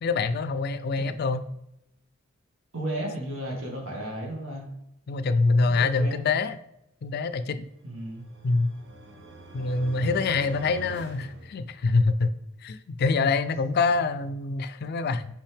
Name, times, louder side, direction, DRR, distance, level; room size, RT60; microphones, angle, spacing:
voice 1, 0.0-1.4 5.1-6.6 7.0-7.6 8.4-8.7 9.5-12.3 12.6-15.3, left 3 dB, 50° left, 12 dB, 0.4 m, -25 dB
voice 2, 2.7-4.7 5.8-6.3 7.8-8.2, right 1 dB, 90° right, -2 dB, 2.0 m, -34 dB
sound 1, 7.8-12.1, right 2 dB, 55° right, 0.8 m, -45 dB
5.4 x 5.3 x 3.5 m, 0.81 s
head